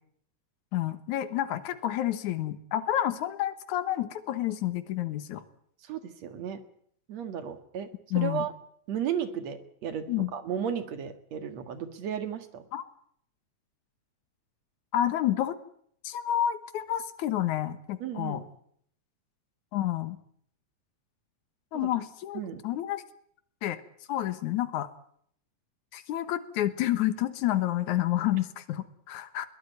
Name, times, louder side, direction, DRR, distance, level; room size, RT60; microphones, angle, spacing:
voice 1, 0.7-5.4 8.1-8.5 10.1-10.3 12.7-12.8 14.9-15.6 16.0-18.4 19.7-20.2 21.7-23.0 23.6-23.8 24.1-24.9 25.9-29.5, left 12 dB, 85° left, 11 dB, 2.7 m, -29 dB
voice 2, 5.8-6.6 7.1-7.9 8.1-8.5 8.9-12.6 18.0-18.4 21.7-21.9 22.3-22.6, right 8 dB, 65° right, 10 dB, 2.9 m, -34 dB
22.0 x 17.5 x 9.3 m, 0.66 s
omnidirectional pair, 3.3 m